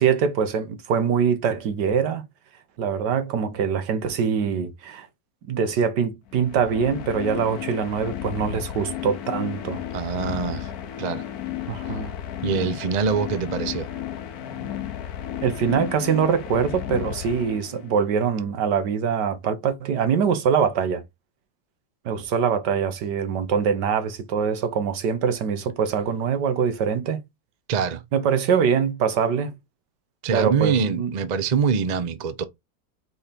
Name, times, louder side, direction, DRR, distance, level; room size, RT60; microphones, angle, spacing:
voice 1, 0.0-2.2 2.8-5.1 5.5-9.8 11.7-12.1 15.4-21.0 22.0-27.2 28.1-29.5 30.3-31.1, right 6 dB, 80° right, 1.6 m, -23 dB
sound 1, 6.3-18.0, left 10 dB, 70° left, 1.2 m, -33 dB
voice 2, 9.9-10.7 11.0-11.2 12.4-13.9 27.7-28.0 30.2-32.4, right 6 dB, 45° right, 0.6 m, -24 dB
4.5 x 4.3 x 5.1 m
omnidirectional pair, 1.8 m